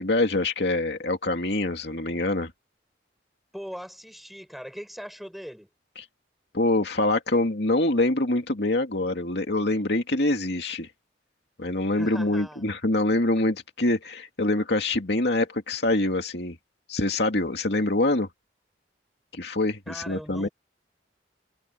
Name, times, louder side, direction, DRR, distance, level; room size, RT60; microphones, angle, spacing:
voice 1, 0.0-2.5 6.0-6.1 6.5-10.9 11.6-16.6 16.9-18.3 19.3-20.5, left 2 dB, 65° left, 2.4 m, -25 dB
voice 2, 3.5-5.7 11.9-12.6 19.9-20.5, equal, ahead, 6.2 m, -40 dB
head